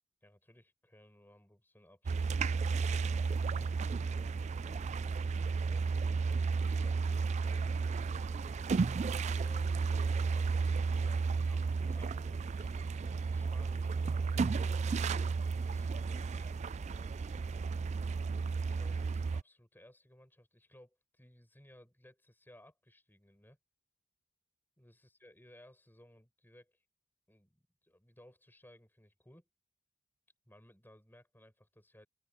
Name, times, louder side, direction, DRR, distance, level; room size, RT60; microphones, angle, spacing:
voice 1, 0.2-3.4 4.1-5.1 5.7-8.5 9.3-9.8 10.2-15.2 15.6-17.2 18.7-23.6 24.8-26.8 27.3-29.5 30.5-32.1, left 1 dB, 10° left, 6.7 m, -61 dB
sound 1, 2.1-19.4, right 4 dB, 35° right, 0.3 m, -33 dB
open air
head